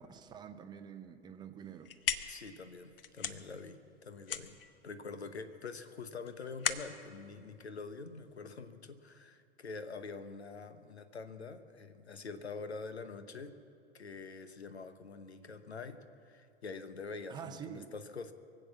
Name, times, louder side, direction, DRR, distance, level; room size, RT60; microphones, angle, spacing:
voice 1, 0.0-1.9 17.3-17.9, right 8 dB, 15° right, 8 dB, 0.7 m, -47 dB
sound 1, 1.6-8.5, left 9 dB, 60° left, 0.8 m, -40 dB
voice 2, 2.3-4.6 4.8-13.6 13.9-18.3, left 4 dB, 80° left, 11 dB, 1.0 m, -45 dB
23.5 x 7.9 x 7.3 m, 2.6 s
figure-of-eight pair, 100°, 32 cm